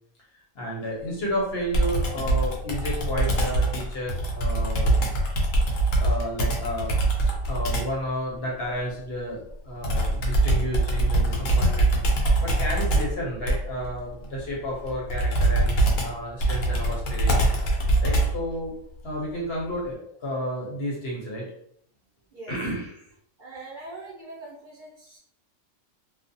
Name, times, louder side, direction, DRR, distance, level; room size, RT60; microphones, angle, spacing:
voice 1, 0.5-4.9 6.0-7.0 7.5-12.0 12.4-17.3 18.0-18.7 19.0-21.5 22.5-23.1, equal, 55° left, -3 dB, 0.9 m, -31 dB
Computer keyboard, 1.7-8.0 9.8-18.5, right 2 dB, 90° left, 1.0 m, -23 dB
voice 2, 23.4-25.2, right 2 dB, 45° right, -7 dB, 0.8 m, -42 dB
2.4 x 2.3 x 2.6 m, 0.69 s
omnidirectional pair, 1.3 m